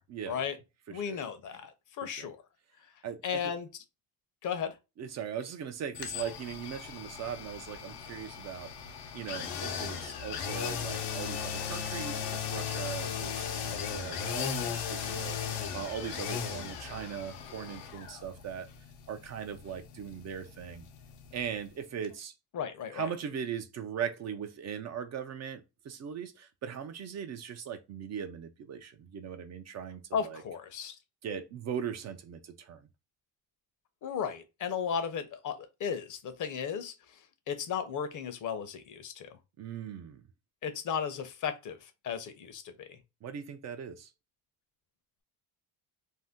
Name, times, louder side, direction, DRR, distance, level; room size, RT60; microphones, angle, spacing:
voice 1, 0.1-0.4 0.9-1.2 2.1-2.3 3.0-3.5 5.0-18.7 19.1-20.8 21.3-22.3 22.9-30.4 31.2-32.9 39.6-40.2 43.2-44.1, right 7 dB, 45° right, 0.4 m, -39 dB
voice 2, 0.9-1.7 2.0-2.4 3.2-3.7 4.4-4.7 22.5-23.0 30.1-30.9 34.0-36.9 37.5-39.3 40.6-41.8 42.0-42.9, left 7 dB, 50° left, 0.7 m, -35 dB
sound 1, 5.9-21.8 22.0-22.1, left 7 dB, 85° left, 0.8 m, -37 dB
2.6 x 2.1 x 3.4 m
cardioid pair, 115°, 40 cm